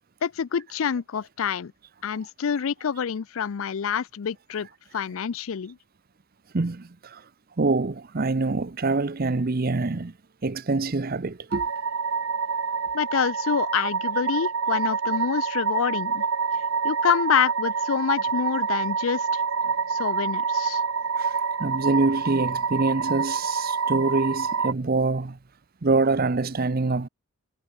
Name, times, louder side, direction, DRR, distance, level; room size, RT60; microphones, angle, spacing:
voice 1, 0.2-1.7 2.0-4.7 4.9-5.8 12.9-16.2 16.8-19.4 19.9-20.8, left 7 dB, 70° left, 0.4 m, -27 dB
voice 2, 6.5-7.2 7.6-10.1 10.4-11.7 21.2-21.3 21.6-25.4 25.8-27.1, right 3 dB, 45° right, 0.7 m, -25 dB
sound 1, 11.5-24.7, right 5 dB, 70° right, 1.1 m, -27 dB
head